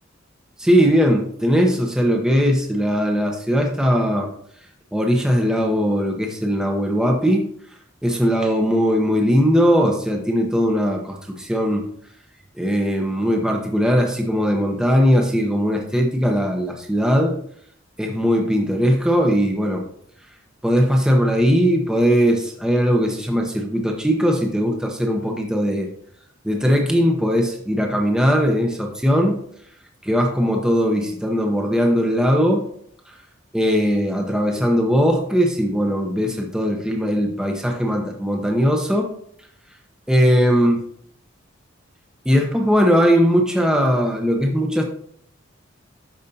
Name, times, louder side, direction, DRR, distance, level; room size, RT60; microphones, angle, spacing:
voice 1, 0.6-4.3 4.9-7.5 8.0-11.8 12.5-17.4 18.0-19.9 20.6-25.9 26.4-29.4 30.0-32.6 33.1-33.2 33.5-39.1 40.1-40.8 42.2-44.8, equal, 5° right, 1 dB, 0.8 m, -19 dB
12.0 x 5.1 x 2.8 m, 0.66 s
head